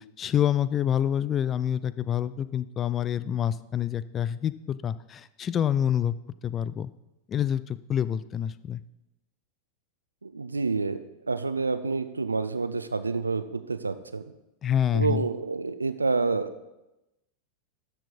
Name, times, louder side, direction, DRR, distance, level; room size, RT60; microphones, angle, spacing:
voice 1, 0.2-6.1 6.4-6.9 7.3-8.8 14.6-15.3, left 9 dB, 25° left, 16 dB, 0.4 m, -27 dB
voice 2, 10.2-11.0 11.3-14.2 14.9-16.7, right 4 dB, 80° right, 11 dB, 0.6 m, -28 dB
13.0 x 4.6 x 5.3 m, 0.94 s
figure-of-eight pair, 90°, 0 cm